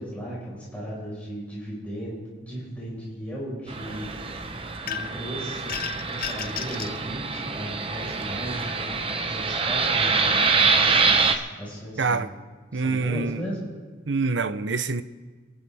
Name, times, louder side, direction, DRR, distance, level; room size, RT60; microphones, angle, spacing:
voice 1, 0.0-4.1 4.8-5.7 6.1-12.2 12.7-13.7, equal, 5° left, 4.8 m, -36 dB
Fixed-wing aircraft airplane, 3.7-11.3, right 4 dB, 25° right, 0.7 m, -25 dB
sound 1, 4.9-5.3 5.7-7.0, left 8 dB, 45° left, 0.6 m, -33 dB
voice 2, 12.0-12.3 12.7-13.4 14.1-15.0, right 4 dB, 65° right, 0.7 m, -25 dB
26.5 x 11.5 x 3.5 m
head